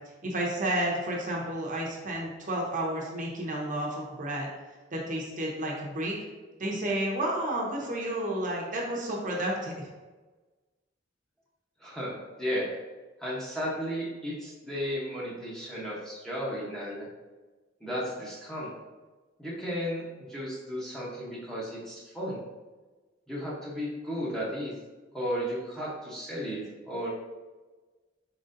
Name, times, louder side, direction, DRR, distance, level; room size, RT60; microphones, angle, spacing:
voice 1, 0.2-4.5 4.9-6.2 6.6-9.9, right 1 dB, 40° right, -3 dB, 0.8 m, -31 dB
voice 2, 11.8-12.7 13.2-17.1 17.8-18.7 19.4-20.0 20.3-22.4 23.3-24.7 25.1-27.1, equal, 5° left, -7 dB, 0.9 m, -34 dB
4.8 x 3.9 x 2.6 m, 1.3 s
head